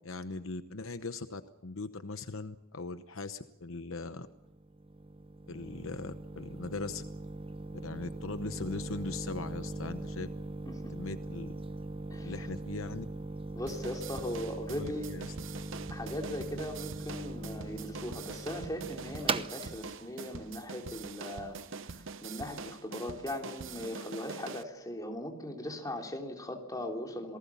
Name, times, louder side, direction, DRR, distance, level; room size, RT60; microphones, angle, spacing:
voice 1, 0.0-4.3 5.5-7.0 7.7-10.3 10.9-11.5 12.2-13.0 14.7-15.3, left 3 dB, 65° left, 10 dB, 1.0 m, -40 dB
sound 1, 4.2-21.8, right 2 dB, 25° right, 0.9 m, -41 dB
voice 2, 13.5-15.1 15.9-21.6 21.9-27.4, left 1 dB, 15° left, 2 dB, 3.4 m, -39 dB
sound 2, 13.7-24.6, right 5 dB, 65° right, 0.8 m, -44 dB
27.5 x 19.0 x 7.1 m, 0.95 s
head